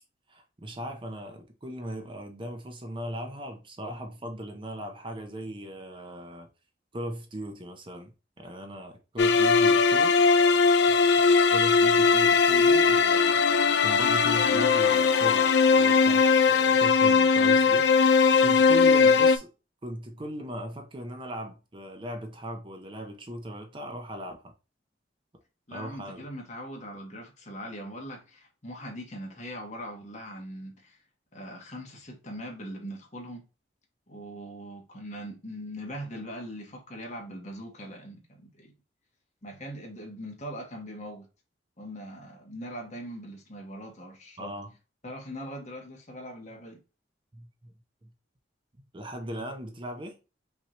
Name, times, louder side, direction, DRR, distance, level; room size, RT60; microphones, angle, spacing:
voice 1, 0.3-6.5 6.9-10.1 10.9-11.0 11.5-17.9 18.4-19.5 19.8-24.5 25.7-26.2 44.4-44.7 47.3-47.7 48.0-48.1 48.9-50.2, equal, 25° right, 0.7 m, -38 dB
sound 1, 9.2-19.4, left 5 dB, 65° left, 0.4 m, -20 dB
voice 2, 25.7-31.0 31.3-33.5 34.1-38.7 39.4-41.3 41.8-44.5 45.0-46.8, equal, 40° left, 1.3 m, -41 dB
5.6 x 2.9 x 3.0 m
head